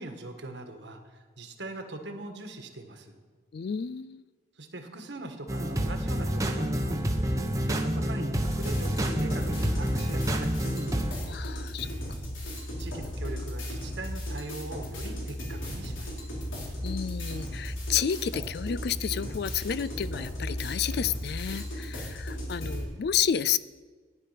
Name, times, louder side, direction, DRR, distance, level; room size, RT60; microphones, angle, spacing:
voice 1, 0.0-3.2 4.6-10.8 12.8-16.2 21.8-22.3, right 2 dB, 65° right, 5 dB, 1.4 m, -42 dB
voice 2, 3.5-4.2 11.3-11.9 16.8-23.6, left 8 dB, 55° left, 17 dB, 0.3 m, -31 dB
sound 1, 5.5-11.1, equal, 15° right, 0.9 m, -28 dB
sound 2, 8.4-22.8, equal, 85° left, 4.1 m, -35 dB
14.0 x 10.0 x 5.8 m, 1.4 s
head